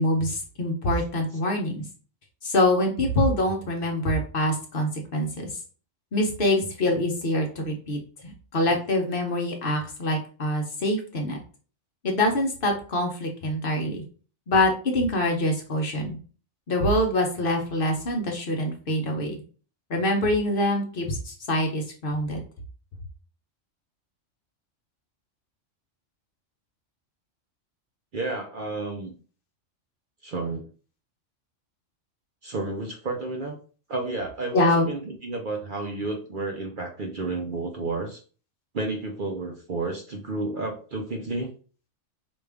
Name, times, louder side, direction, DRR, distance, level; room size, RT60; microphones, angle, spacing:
voice 1, 0.0-1.8 2.4-5.5 6.1-11.4 12.0-14.0 14.5-16.2 16.7-19.4 19.9-22.4 34.5-34.9, left 1 dB, 50° left, 2 dB, 0.9 m, -25 dB
voice 2, 28.1-29.1 30.2-30.7 32.4-33.6 33.9-38.2 38.7-41.5, right 3 dB, 50° right, 2 dB, 0.7 m, -31 dB
5.1 x 2.4 x 3.4 m, 0.39 s
omnidirectional pair, 1.3 m